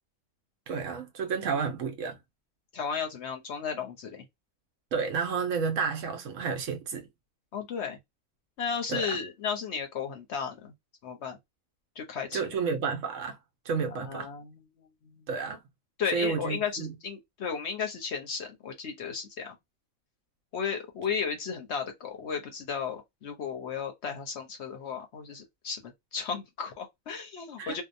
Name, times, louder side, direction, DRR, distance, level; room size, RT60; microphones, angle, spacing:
voice 1, 0.7-2.2 4.9-7.1 8.9-9.2 12.3-13.4 13.6-14.3 15.3-15.6 16.1-16.9 27.6-27.8, right 5 dB, 70° right, 1.0 m, -31 dB
voice 2, 2.7-4.2 7.5-8.0 8.6-10.7 11.0-11.4 12.0-12.4 14.0-15.2 16.0-19.5 20.5-27.8, left 6 dB, 60° left, 0.9 m, -34 dB
2.8 x 2.0 x 2.6 m
omnidirectional pair, 1.4 m